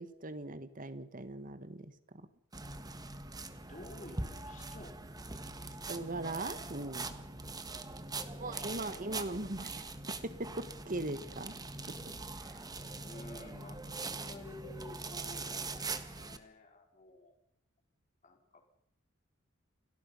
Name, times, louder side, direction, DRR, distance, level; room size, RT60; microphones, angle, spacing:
voice 1, 0.0-2.3 5.9-7.1 8.4-9.9 10.2-11.6 11.9-12.6, right 2 dB, 45° right, 12 dB, 1.6 m, -40 dB
sound 1, 2.5-16.4, right 3 dB, 20° right, 1.5 m, -42 dB
voice 2, 3.7-5.0 8.1-9.5 13.0-17.3 18.2-18.6, left 1 dB, 40° left, 3 dB, 4.3 m, -52 dB
29.0 x 18.5 x 5.7 m, 0.72 s
head